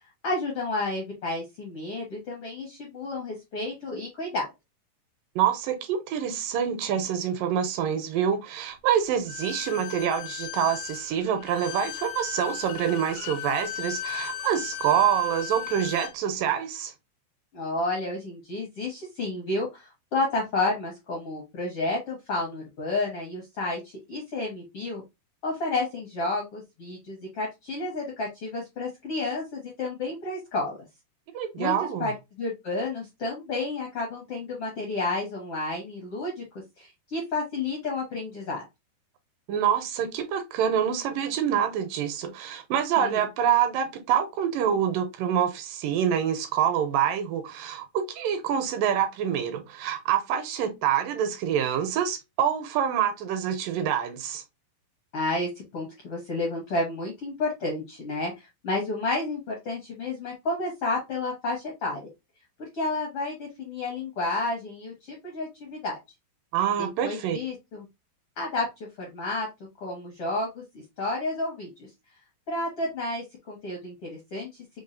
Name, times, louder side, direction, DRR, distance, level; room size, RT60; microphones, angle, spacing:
voice 1, 0.0-4.5 17.5-25.0 25.4-30.8 31.6-32.1 32.4-36.4 36.8-38.6 43.0-43.2 55.1-62.0 62.6-66.0 66.8-67.8 68.4-68.6 69.0-69.5 69.8-71.7 72.5-74.5, left 2 dB, 70° left, 1.4 m, -31 dB
voice 2, 5.4-16.9 31.3-32.1 39.5-54.4 66.5-67.4, right 9 dB, 80° right, 2.1 m, -26 dB
Bowed string instrument, 9.3-16.2, left 12 dB, 85° left, 2.4 m, -36 dB
5.4 x 2.3 x 2.5 m
omnidirectional pair, 4.1 m